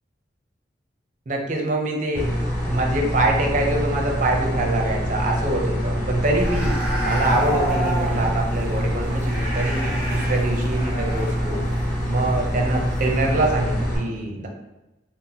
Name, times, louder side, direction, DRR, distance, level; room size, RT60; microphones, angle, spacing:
voice 1, 1.3-2.3 2.6-11.6 12.1-14.5, right 2 dB, 45° right, 0 dB, 0.6 m, -25 dB
sound 1, 2.1-14.0, equal, 10° left, 1.4 m, -25 dB
sound 2, 6.4-13.0 13.2-13.4, right 1 dB, 10° right, 0.9 m, -29 dB
2.8 x 2.0 x 4.0 m, 1.0 s
head